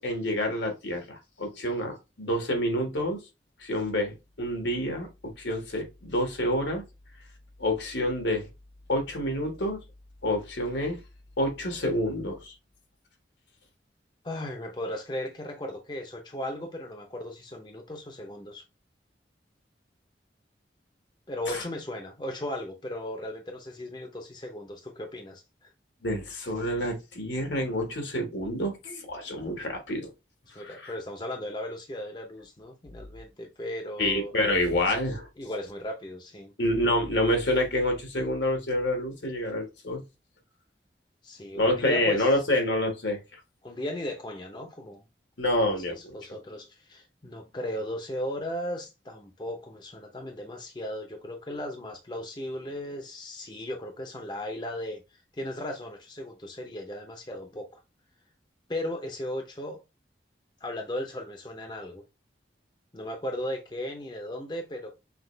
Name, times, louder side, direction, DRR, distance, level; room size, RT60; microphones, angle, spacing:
voice 1, 0.0-3.2 3.6-6.8 7.6-8.5 8.9-9.8 10.2-11.0 11.4-12.5 21.5-21.6 26.0-30.1 30.6-30.9 34.0-35.3 36.6-40.0 41.5-43.2 45.4-46.0, left 1 dB, 80° left, 1.5 m, -28 dB
voice 2, 14.2-18.6 21.3-25.7 30.5-34.3 35.4-36.5 41.2-42.3 43.6-45.0 45.5-57.8 58.7-59.8 60.6-62.0 62.9-64.9, left 1 dB, 25° left, 0.6 m, -36 dB
5.9 x 2.4 x 3.2 m
head